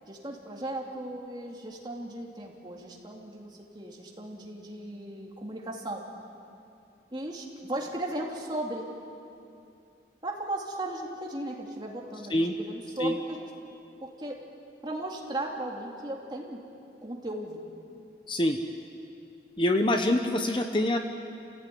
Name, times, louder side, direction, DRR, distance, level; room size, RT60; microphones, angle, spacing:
voice 1, 0.1-6.0 7.1-8.9 10.2-13.4 14.0-14.4 14.8-16.6 17.0-17.6, right 1 dB, 25° right, -1 dB, 2.8 m, -36 dB
voice 2, 18.3-18.6 19.6-21.0, left 1 dB, 25° left, 5 dB, 1.0 m, -25 dB
28.0 x 16.0 x 9.4 m, 2.6 s
head